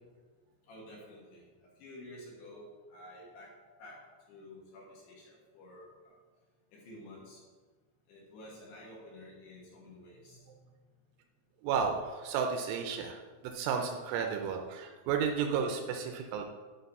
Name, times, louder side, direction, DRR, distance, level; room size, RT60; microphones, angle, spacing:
voice 1, 0.7-3.5 3.8-4.0 4.3-6.1 6.7-7.4 8.1-10.6, left 1 dB, 65° left, -4 dB, 3.1 m, -51 dB
voice 2, 11.6-16.4, right 6 dB, 80° right, 4 dB, 3.0 m, -33 dB
11.0 x 4.0 x 5.4 m, 1.4 s
omnidirectional pair, 5.9 m